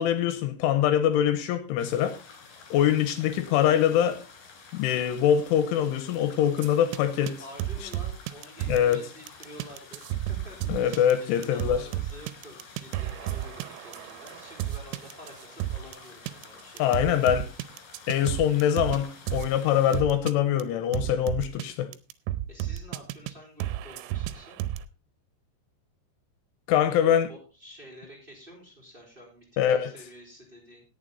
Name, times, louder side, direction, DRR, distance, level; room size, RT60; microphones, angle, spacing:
voice 1, 0.0-2.2 2.7-4.2 4.7-7.4 8.7-9.0 10.7-11.8 16.8-17.5 18.1-21.9 26.7-27.3 29.6-29.9, left 10 dB, 80° left, 3.3 m, -23 dB
sound 1, 1.8-20.0, left 4 dB, 50° left, 4.1 m, -50 dB
sound 2, 6.6-7.0 7.3-7.4 7.6-8.9 9.3-16.0 16.3-16.5 16.8-19.0 19.3-19.5 19.9-20.3 20.6-20.7 20.9-21.6 21.9-23.3 23.6-24.8, right 13 dB, 85° right, 3.4 m, -32 dB
voice 2, 7.4-16.9 17.2-17.3 22.5-24.6 26.9-30.8, equal, 10° right, 3.9 m, -49 dB
17.5 x 7.3 x 4.0 m
omnidirectional pair, 5.8 m